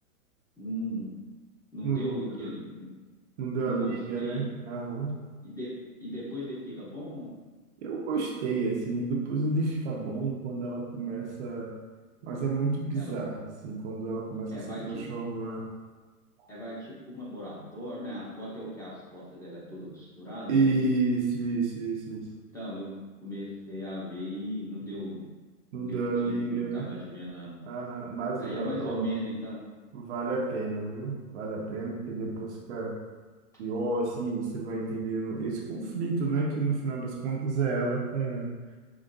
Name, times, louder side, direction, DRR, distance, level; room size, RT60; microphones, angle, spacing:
voice 1, 0.6-1.1 1.7-2.9 3.6-4.5 5.4-5.7 6.0-7.3 12.9-13.2 14.5-15.0 16.5-20.9 22.5-22.9 23.2-25.2 25.8-27.6 28.4-29.6, equal, 5° left, -9 dB, 1.0 m, -37 dB
voice 2, 1.8-2.5 3.4-5.1 7.8-11.7 12.2-15.7 20.5-22.3 25.7-26.9 27.7-29.0 29.9-32.9 33.6-38.5, right 3 dB, 45° right, -1 dB, 0.7 m, -30 dB
5.1 x 3.5 x 2.6 m, 1.3 s
hypercardioid pair, 140°, 47 cm